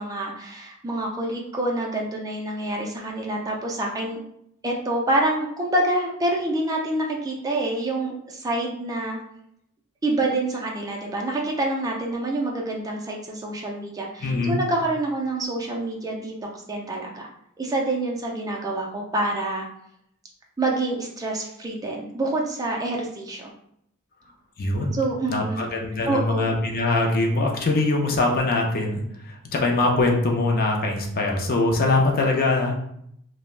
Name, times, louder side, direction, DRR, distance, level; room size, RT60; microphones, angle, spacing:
voice 1, 0.0-4.2 4.6-9.2 10.0-17.3 17.6-19.7 20.6-23.5 24.9-25.6 26.1-26.5, right 2 dB, 15° right, -1 dB, 0.3 m, -27 dB
voice 2, 14.2-14.6 24.6-25.0 25.3-32.8, left 2 dB, 40° left, 1 dB, 0.5 m, -23 dB
3.2 x 2.0 x 2.4 m, 0.73 s
head